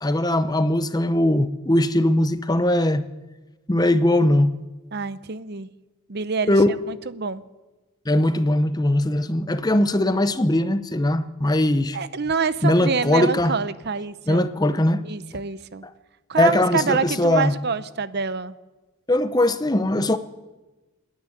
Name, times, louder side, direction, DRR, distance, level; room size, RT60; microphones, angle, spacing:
voice 1, 0.0-3.0 3.7-4.6 6.5-6.7 8.1-12.0 12.6-13.5 14.3-15.0 16.4-17.5 19.1-20.2, left 1 dB, 15° left, 0.7 m, -20 dB
voice 2, 4.9-5.7 6.1-6.6 6.9-7.4 11.9-14.5 15.0-15.8 16.3-18.6, right 5 dB, 45° right, 0.7 m, -26 dB
27.0 x 10.5 x 9.8 m
head